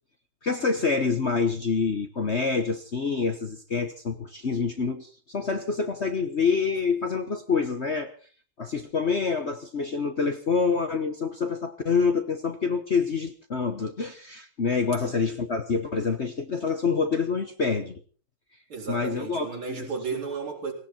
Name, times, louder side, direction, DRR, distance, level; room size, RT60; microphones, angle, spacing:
voice 1, 0.4-8.1 8.6-18.0 18.9-19.9, left 5 dB, 40° left, 7 dB, 1.1 m, -27 dB
voice 2, 14.9-15.3 18.7-20.7, right 5 dB, 75° right, 0 dB, 4.8 m, -34 dB
18.0 x 17.5 x 4.4 m, 0.40 s
omnidirectional pair, 2.3 m